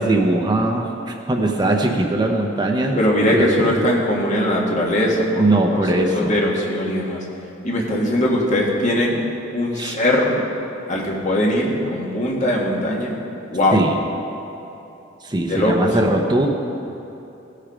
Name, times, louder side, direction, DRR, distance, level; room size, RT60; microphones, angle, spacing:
voice 1, 0.0-3.0 3.3-3.8 5.4-6.4 9.8-10.0 13.7-13.9 15.2-16.5, right 2 dB, 25° right, 2 dB, 0.7 m, -20 dB
voice 2, 3.0-5.6 5.9-7.2 7.6-9.2 9.5-10.4 10.9-13.1 13.5-13.8 15.5-15.9, left 1 dB, 40° left, -3 dB, 1.8 m, -20 dB
17.0 x 6.6 x 5.0 m, 2.9 s
head